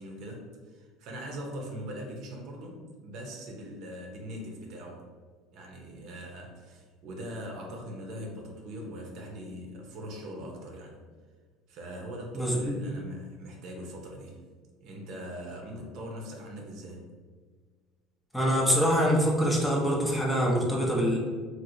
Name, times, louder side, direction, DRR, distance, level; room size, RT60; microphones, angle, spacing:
voice 1, 0.0-5.1 5.5-11.0 11.7-14.4 14.8-17.0, equal, 60° right, 0 dB, 0.7 m, -41 dB
voice 2, 12.3-12.8 18.3-21.2, equal, 5° left, -3 dB, 0.8 m, -25 dB
2.9 x 2.9 x 2.6 m, 1.5 s
supercardioid pair, 105°, 0 cm